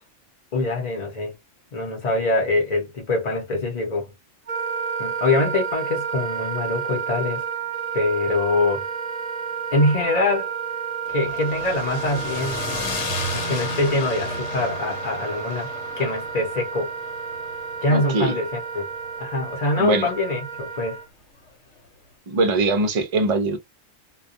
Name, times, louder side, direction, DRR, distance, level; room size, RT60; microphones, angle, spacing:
voice 1, 0.5-1.4 1.7-4.1 5.0-7.4 7.9-8.9 9.7-10.5 11.1-12.6 13.3-15.7 16.0-16.9 17.8-18.9 19.2-21.0, left 2 dB, 40° left, 0.7 m, -24 dB
Wind instrument woodwind instrument, 4.5-21.1, right 6 dB, 35° right, 0.8 m, -31 dB
sound 1, 11.1-19.3, left 2 dB, 60° left, 1.0 m, -33 dB
voice 2, 17.9-18.3 19.8-20.1 22.3-23.6, right 3 dB, 55° right, 0.4 m, -21 dB
2.2 x 2.2 x 2.5 m
omnidirectional pair, 1.4 m